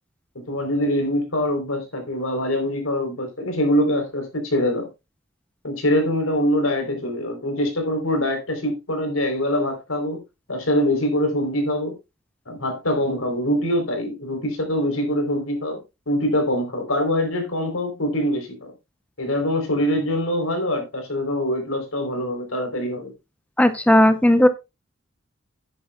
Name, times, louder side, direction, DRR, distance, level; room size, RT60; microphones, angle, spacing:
voice 1, 0.5-4.9 5.6-10.2 10.5-11.9 12.5-15.8 16.1-18.7 19.2-23.1, left 1 dB, 85° left, 4.1 m, -24 dB
voice 2, 23.6-24.5, left 1 dB, 5° left, 0.8 m, -15 dB
11.5 x 9.8 x 2.4 m
head